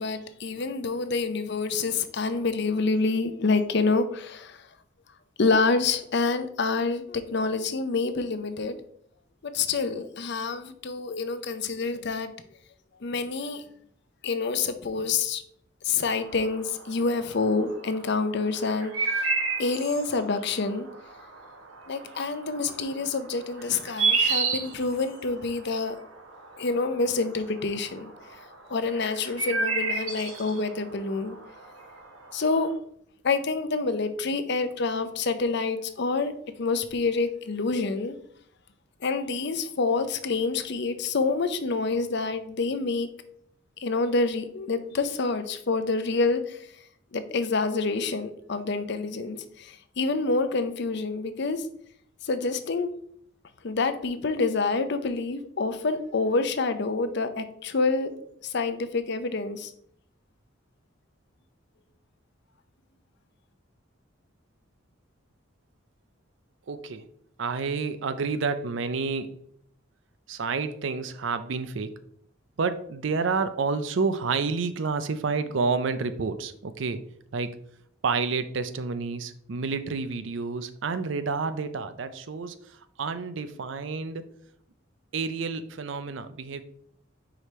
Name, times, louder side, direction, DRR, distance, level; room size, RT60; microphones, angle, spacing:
voice 1, 0.0-4.7 5.4-8.8 9.4-12.3 13.0-13.6 14.2-15.4 15.8-19.3 19.6-20.9 21.9-26.0 26.6-28.1 28.7-31.4 32.3-32.7 33.2-36.3 36.6-38.2 39.0-43.1 43.8-46.7 47.1-51.7 52.2-52.9 53.6-58.1 58.4-59.7, left 4 dB, 60° left, 11 dB, 0.6 m, -27 dB
sound 1, 16.1-32.7, right 4 dB, 90° right, 1.2 m, -33 dB
voice 2, 66.7-67.1 67.4-69.5 70.3-72.0 72.6-77.0 77.3-77.6 78.0-84.3 85.1-86.6, right 4 dB, 65° right, 12 dB, 0.5 m, -29 dB
5.0 x 4.9 x 4.3 m, 0.67 s
head